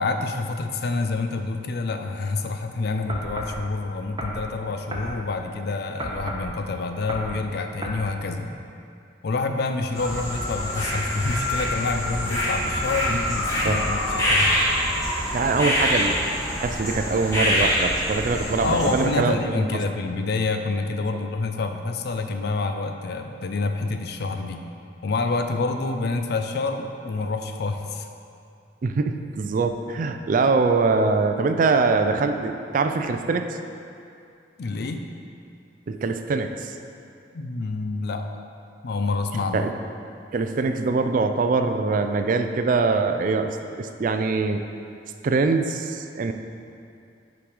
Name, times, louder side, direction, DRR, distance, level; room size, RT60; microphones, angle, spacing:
voice 1, 0.0-8.5 9.2-14.6 18.6-24.6 25.0-28.1 34.6-35.1 37.3-38.3 38.8-39.7, left 3 dB, 65° left, 6 dB, 0.5 m, -27 dB
sound 1, 3.1-3.6 4.2-4.4 4.9-5.1 6.0-6.5 7.1-7.3 7.8-8.0, equal, 25° right, 0.7 m, -32 dB
sound 2, 9.9-19.0, equal, 20° left, 1.6 m, -25 dB
voice 2, 13.5-13.8 15.3-16.2 16.5-19.7 28.8-33.6 35.9-36.7 39.5-39.7 40.3-44.6 45.2-46.3, right 4 dB, 50° right, 7 dB, 0.4 m, -23 dB
5.9 x 5.1 x 4.8 m, 2.5 s
head